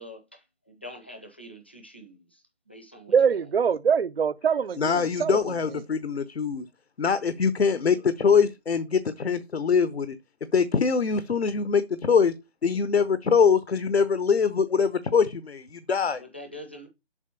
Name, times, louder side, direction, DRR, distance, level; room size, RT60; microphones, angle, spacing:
voice 1, 0.0-3.5 16.1-16.9, equal, 10° left, 0.5 m, -45 dB
voice 2, 3.1-5.4, right 7 dB, 65° right, 0.5 m, -23 dB
voice 3, 4.8-6.7 7.0-10.2 10.5-12.3 12.6-16.2, left 6 dB, 75° left, 0.9 m, -23 dB
7.3 x 4.5 x 6.8 m
figure-of-eight pair, 160°, 32 cm